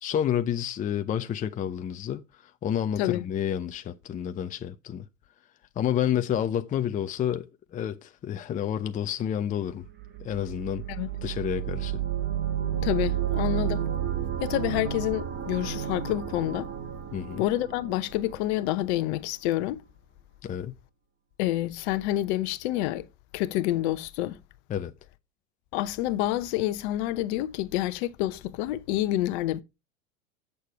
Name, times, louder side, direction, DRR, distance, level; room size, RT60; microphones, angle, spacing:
voice 1, 0.0-5.0 5.8-9.9 10.2-10.8 11.2-12.0 17.1-17.4 20.4-20.8 24.7-24.9, left 9 dB, 20° left, 0.6 m, -29 dB
sound 1, 9.8-18.7, right 10 dB, 30° right, 1.4 m, -31 dB
voice 2, 12.8-13.8 14.4-16.7 17.4-19.8 21.4-23.1 23.3-24.4 25.7-29.6, left 14 dB, 55° left, 0.9 m, -28 dB
8.3 x 6.8 x 4.6 m
hypercardioid pair, 95°, 40 cm